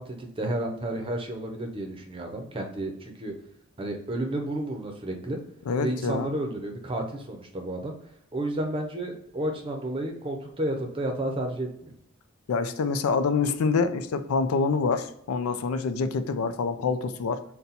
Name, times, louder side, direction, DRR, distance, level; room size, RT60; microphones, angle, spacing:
voice 1, 0.0-3.3 3.8-5.4 5.8-7.9 8.3-11.9, right 1 dB, 25° right, 3 dB, 0.6 m, -31 dB
voice 2, 5.7-6.3 12.5-17.4, left 4 dB, 85° left, 10 dB, 0.4 m, -26 dB
4.1 x 2.2 x 3.9 m, 0.71 s
head